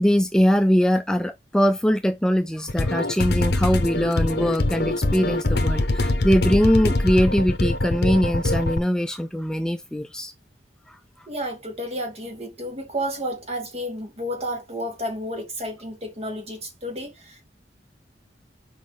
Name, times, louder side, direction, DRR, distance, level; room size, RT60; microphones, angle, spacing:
voice 1, 0.0-10.3 10.9-11.0, equal, 5° left, 0.3 m, -22 dB
sound 1, 2.7-8.8, left 2 dB, 60° left, 0.9 m, -23 dB
voice 2, 11.3-17.4, equal, 35° right, 2.0 m, -31 dB
6.0 x 4.9 x 3.3 m
head